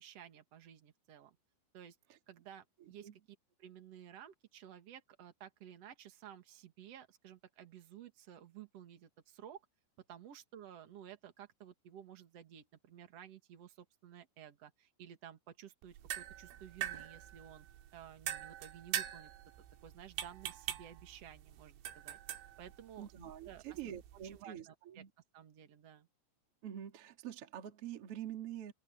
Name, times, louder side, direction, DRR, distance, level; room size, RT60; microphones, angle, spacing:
voice 1, 0.0-1.4 1.7-1.9 2.3-3.1 3.6-9.6 10.1-17.7 17.9-19.3 19.8-22.2 22.6-23.1 23.4-23.8 24.2-25.0 25.3-26.1, right 10 dB, 70° right, 1.5 m, -54 dB
voice 2, 2.8-3.2 23.0-25.1 26.6-28.7, right 10 dB, 45° right, 2.1 m, -46 dB
sound 1, 15.8-24.4, right 12 dB, 90° right, 4.4 m, -44 dB
omnidirectional pair, 5.7 m